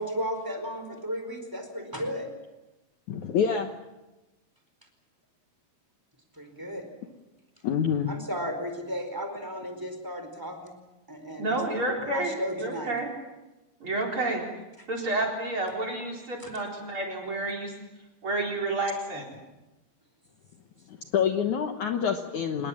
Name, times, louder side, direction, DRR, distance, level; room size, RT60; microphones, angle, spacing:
voice 1, 0.0-2.3 6.3-6.9 8.1-10.8 11.1-11.6 12.0-13.0 16.4-16.5, equal, 5° right, 5 dB, 4.0 m, -34 dB
voice 2, 3.1-3.7 7.6-8.1 20.9-22.7, left 7 dB, 60° left, 5 dB, 2.2 m, -27 dB
voice 3, 11.4-13.1 13.8-14.4 14.9-17.7 18.2-19.3, right 2 dB, 35° right, 0 dB, 4.8 m, -30 dB
27.0 x 20.5 x 7.4 m, 1.1 s
omnidirectional pair, 4.5 m